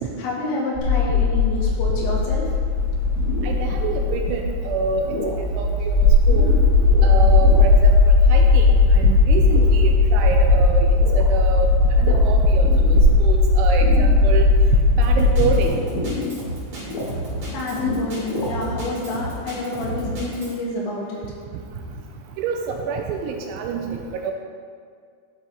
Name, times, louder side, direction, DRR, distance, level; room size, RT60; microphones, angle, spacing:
voice 1, 0.2-2.4 17.5-21.2 21.9-22.0, left 2 dB, 80° left, -4 dB, 4.0 m, -28 dB
sound 1, 0.7-15.7, left 3 dB, 65° right, 4.0 m, -17 dB
sound 2, 2.8-18.9, left 2 dB, 65° left, 3.2 m, -34 dB
voice 2, 3.4-5.2 5.6-6.6 7.0-8.7 8.9-11.7 12.0-14.5 14.9-15.8 22.4-24.3, right 5 dB, 85° right, 3 dB, 2.8 m, -27 dB
Drum kit, 15.0-20.6, right 1 dB, 40° right, 3.0 m, -32 dB
12.0 x 5.2 x 3.9 m, 2.1 s
omnidirectional pair, 5.7 m